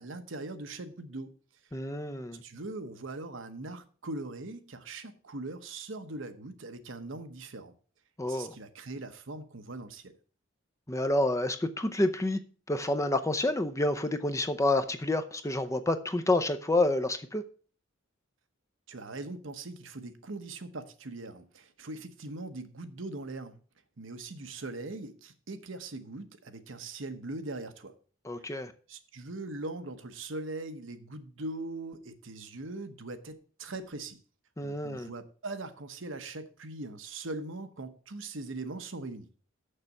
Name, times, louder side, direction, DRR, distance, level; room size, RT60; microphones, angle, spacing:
voice 1, 0.0-1.3 2.4-7.7 8.3-10.2 18.9-23.6 24.0-27.9 28.4-28.6 28.9-34.2 34.6-39.3, right 2 dB, 70° right, 1.0 m, -41 dB
voice 2, 1.7-2.4 8.2-8.5 10.9-12.4 12.7-17.4 28.2-28.7 34.6-35.1, left 2 dB, 15° left, 0.6 m, -28 dB
6.6 x 6.6 x 7.2 m
head